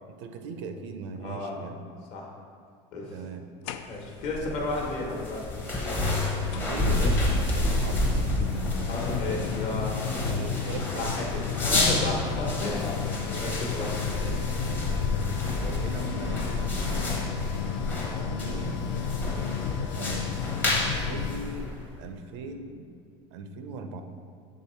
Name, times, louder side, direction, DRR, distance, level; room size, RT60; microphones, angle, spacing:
voice 1, 0.1-1.9 3.1-3.5 6.6-8.6 10.3-11.1 13.4-13.6 14.0-17.4 18.3-18.8 19.9-20.3 21.0-21.7 22.0-22.9 23.3-24.0, right 4 dB, 85° right, 7 dB, 0.6 m, -38 dB
voice 2, 1.2-1.6 2.1-2.3 2.9-3.1 3.9-5.5 6.2-6.4 8.9-10.4 11.0-12.9 13.2-13.9 14.1-14.3, left 2 dB, 45° left, -1 dB, 1.1 m, -33 dB
sound 1, 3.6-4.3 5.6-5.7 6.5-21.5, left 7 dB, 70° left, 0.4 m, -33 dB
sound 2, 4.2-22.0, left 2 dB, 15° left, 0.8 m, -30 dB
7.5 x 3.6 x 4.4 m, 2.3 s
cardioid pair, 165°, 15 cm